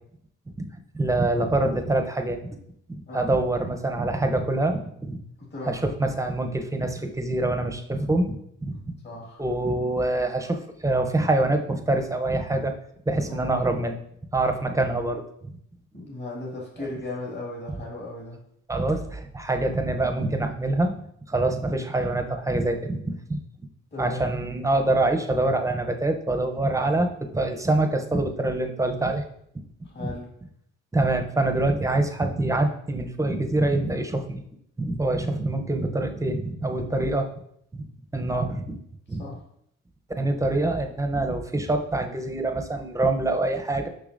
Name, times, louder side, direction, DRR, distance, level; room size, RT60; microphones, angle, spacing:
voice 1, 0.9-2.4 2.9-5.2 5.6-8.4 8.6-8.9 9.4-12.7 13.1-14.0 14.3-15.2 18.7-20.9 21.3-23.4 24.0-27.1 27.3-29.2 30.0-30.1 30.9-34.4 34.8-37.3 38.1-38.8 39.1-39.2 40.2-43.9, right 2 dB, 10° right, 5 dB, 0.7 m, -25 dB
voice 2, 5.4-5.8 9.0-9.4 13.3-13.5 15.9-18.5 23.9-24.2 29.8-30.3 36.8-37.1 39.2-39.4, left 2 dB, 35° left, -3 dB, 1.9 m, -36 dB
6.8 x 5.6 x 2.6 m, 0.71 s
cardioid pair, 90°, 30 cm